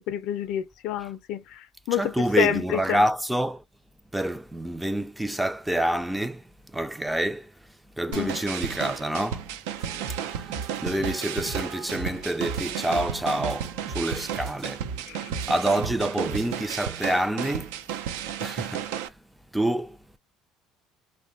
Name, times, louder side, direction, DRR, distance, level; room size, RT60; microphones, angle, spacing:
voice 1, 0.1-3.0 8.1-8.4 15.1-15.3, left 12 dB, 70° left, 0.4 m, -29 dB
voice 2, 1.9-3.6 4.1-7.5 8.0-9.5 10.2-10.5 10.8-14.9 15.5-17.7 18.4-19.1 19.5-20.0, right 1 dB, 5° right, 0.3 m, -27 dB
sound 1, 8.1-19.1, right 9 dB, 85° right, 0.3 m, -33 dB
sound 2, 9.8-16.7, right 5 dB, 55° right, 0.7 m, -38 dB
3.1 x 2.1 x 2.6 m
supercardioid pair, 95°, 0 cm